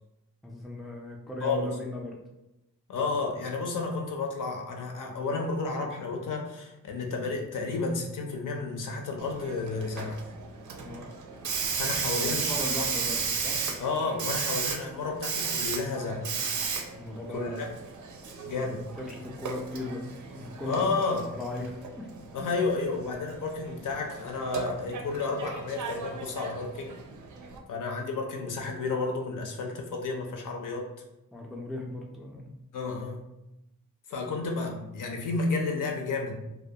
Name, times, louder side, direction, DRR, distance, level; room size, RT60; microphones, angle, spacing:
voice 1, 0.4-2.2 10.8-11.1 12.1-13.6 17.0-17.7 18.4-20.9 21.3-22.1 31.3-32.5, left 1 dB, ahead, -1 dB, 0.3 m, -37 dB
voice 2, 2.9-10.2 11.8-12.5 13.8-16.3 17.3-17.7 18.4-18.9 20.7-21.3 22.3-27.0 27.7-30.9 32.7-33.3 34.1-36.4, left 3 dB, 70° left, 2 dB, 0.5 m, -31 dB
Hiss, 9.2-27.6, right 5 dB, 65° right, 0.5 m, -35 dB
2.3 x 2.1 x 2.7 m, 0.93 s
cardioid pair, 80°, 33 cm